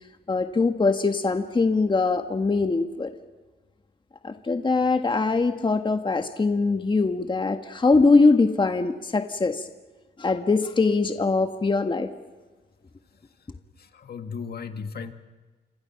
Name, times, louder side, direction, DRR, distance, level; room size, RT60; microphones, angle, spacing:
voice 1, 0.3-3.1 4.2-9.6 10.2-12.1, left 3 dB, 25° left, 6 dB, 1.6 m, -22 dB
voice 2, 13.8-15.1, left 5 dB, 55° left, 7 dB, 1.9 m, -36 dB
29.5 x 27.0 x 5.9 m, 1.3 s
cardioid pair, 90°, 20 cm